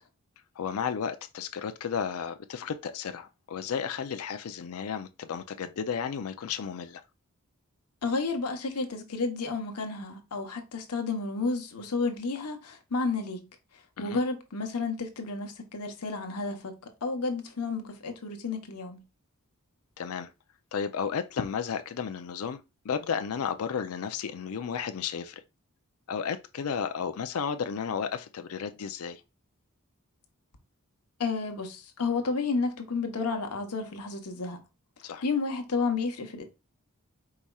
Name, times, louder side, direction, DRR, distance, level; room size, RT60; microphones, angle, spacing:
voice 1, 0.6-7.0 14.0-14.2 20.0-20.3 20.7-22.6 22.8-25.4 26.1-29.2 35.0-35.2, left 6 dB, 70° left, 0.4 m, -33 dB
voice 2, 8.0-13.5 14.0-16.7 17.0-19.0 31.2-34.6 35.2-36.4, left 4 dB, 90° left, 1.0 m, -31 dB
4.8 x 4.1 x 2.3 m
head